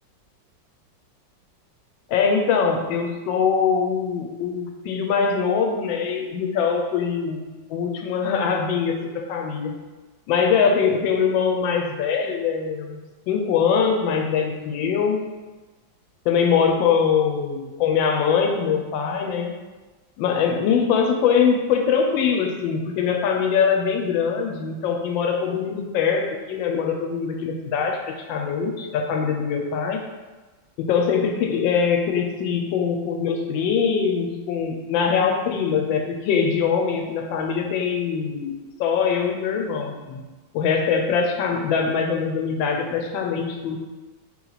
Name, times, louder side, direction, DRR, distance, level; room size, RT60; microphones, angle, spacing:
voice 1, 2.1-9.7 10.3-13.0 13.3-15.2 16.2-19.5 20.2-30.0 30.8-40.2 40.5-43.8, left 6 dB, 80° left, 3 dB, 1.3 m, -22 dB
3.1 x 3.0 x 3.9 m, 1.2 s
omnidirectional pair, 2.1 m